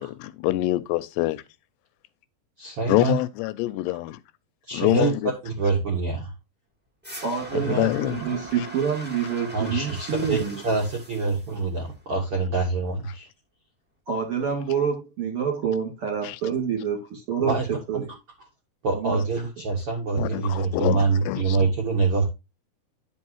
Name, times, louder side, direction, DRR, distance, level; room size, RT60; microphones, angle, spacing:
voice 1, 0.0-1.4 2.9-4.2 4.7-5.3 7.5-8.2 8.6-8.7 16.2-16.4 20.2-21.6, left 18 dB, 85° left, 2.6 m, -25 dB
voice 2, 2.6-3.2 4.7-6.3 7.5-7.9 9.5-13.3 17.4-17.7 17.9-18.0 18.8-22.3, right 4 dB, 60° right, 1.5 m, -25 dB
sound 1, 7.0-12.0, right 1 dB, 10° right, 0.6 m, -41 dB
voice 3, 7.2-10.6 14.1-17.5 17.9-18.1 18.9-19.2, right 7 dB, 40° right, 2.4 m, -27 dB
11.0 x 5.4 x 2.9 m
omnidirectional pair, 5.0 m